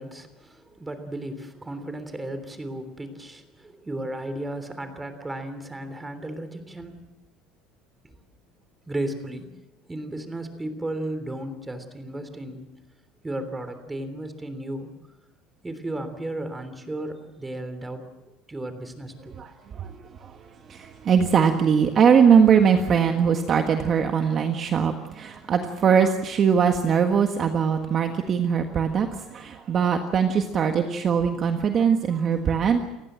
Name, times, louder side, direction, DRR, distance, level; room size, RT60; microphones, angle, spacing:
voice 1, 0.0-7.1 8.0-8.1 8.9-9.5 9.9-12.7 13.2-14.9 15.6-18.0 18.5-19.4, right 1 dB, 10° right, 9 dB, 3.3 m, -34 dB
voice 2, 19.4-19.9 20.2-20.4 20.7-32.8, right 7 dB, 35° right, 5 dB, 1.6 m, -21 dB
29.5 x 15.5 x 7.6 m, 0.97 s
cardioid pair, 135°, 0 cm